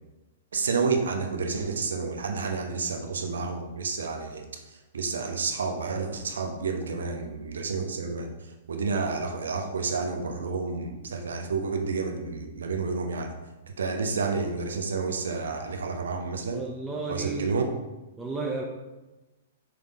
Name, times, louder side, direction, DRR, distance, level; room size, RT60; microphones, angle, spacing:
voice 1, 0.5-4.6 4.9-8.3 8.7-13.3 13.8-16.6 17.1-17.7, right 4 dB, 70° right, 4 dB, 1.0 m, -30 dB
voice 2, 16.5-17.6 18.2-18.6, right 3 dB, 10° right, -2 dB, 0.8 m, -33 dB
6.1 x 5.1 x 3.6 m, 1.1 s
figure-of-eight pair, 110°, 0 cm